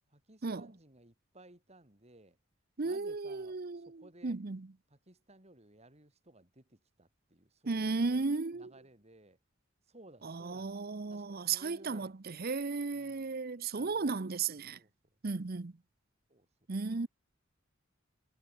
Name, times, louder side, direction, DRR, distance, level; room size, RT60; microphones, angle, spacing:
voice 1, 0.1-2.4 2.8-4.4 4.9-8.2 8.5-9.4 9.9-10.8 11.1-12.1 12.9-13.4 13.7-14.1 14.7-14.9 16.3-16.5, right 1 dB, 35° right, 4.3 m, -59 dB
voice 2, 2.8-4.6 7.7-8.7 10.2-14.8 15.2-15.7 16.7-17.1, right 4 dB, 50° right, 0.7 m, -35 dB
head